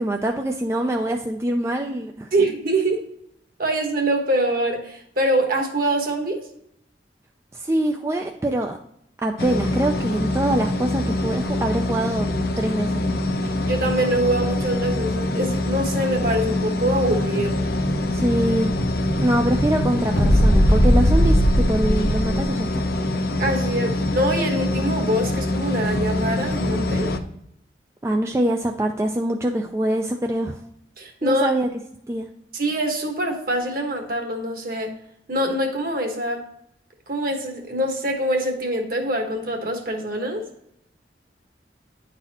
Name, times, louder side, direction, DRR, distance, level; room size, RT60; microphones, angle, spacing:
voice 1, 0.0-2.3 7.5-8.8 9.2-12.3 12.6-13.1 18.1-18.7 19.2-22.8 28.0-30.6 31.2-31.7 32.1-32.3, right 1 dB, 15° right, 3 dB, 0.3 m, -24 dB
voice 2, 2.3-3.0 3.6-6.4 13.4-17.7 23.4-27.1 31.0-31.5 32.5-34.9 35.3-36.4 37.1-40.5, right 1 dB, 50° right, 3 dB, 1.2 m, -24 dB
sound 1, 9.4-27.2, left 1 dB, 55° left, 0.6 m, -25 dB
Explosion, 17.1-22.5, equal, 85° left, 1.4 m, -21 dB
9.8 x 4.1 x 2.8 m, 0.73 s
head